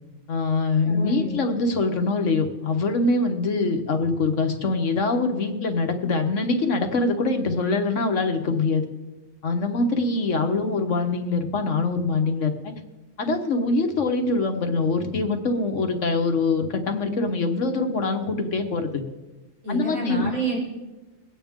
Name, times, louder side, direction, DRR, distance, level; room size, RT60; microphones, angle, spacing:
voice 1, 0.3-8.8 9.4-12.7 13.2-19.0 19.7-20.3, left 3 dB, 60° left, 5 dB, 1.5 m, -24 dB
voice 2, 0.8-1.4 19.6-20.6, right 1 dB, 75° right, -7 dB, 6.5 m, -28 dB
23.0 x 9.0 x 3.6 m, 1.1 s
omnidirectional pair, 1.5 m